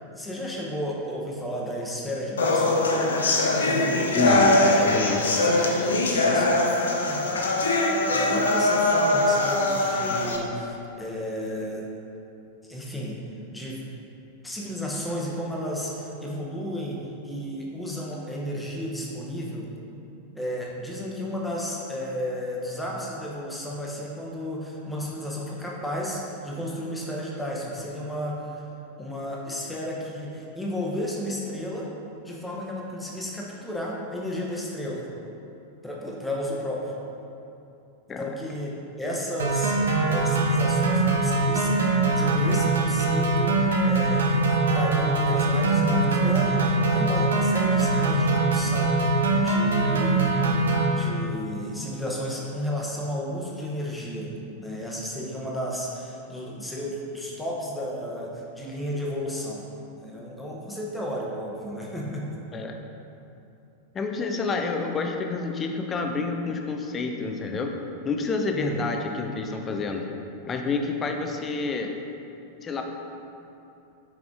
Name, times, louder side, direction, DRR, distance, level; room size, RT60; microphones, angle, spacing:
voice 1, 0.2-2.8 5.3-6.6 7.0-7.5 8.1-11.8 12.6-13.2 13.5-13.8 14.4-17.0 17.2-19.7 20.3-28.4 29.0-31.9 32.2-35.1 35.8-36.9 38.2-39.8 40.1-44.5 44.7-48.9 49.4-59.6 60.0-62.4 68.5-68.8, equal, 5° left, -3 dB, 1.0 m, -33 dB
sound 1, 2.4-10.4, left 2 dB, 70° left, 0.7 m, -22 dB
voice 2, 4.2-5.3 38.1-38.3 62.5-62.7 63.9-67.7 68.0-70.0 70.5-71.9 72.6-72.8, left 3 dB, 25° left, 3 dB, 0.6 m, -28 dB
sound 2, 39.4-50.9, right 2 dB, 65° right, 0.8 m, -22 dB
5.9 x 4.9 x 3.6 m, 2.8 s
figure-of-eight pair, 90°, 0 cm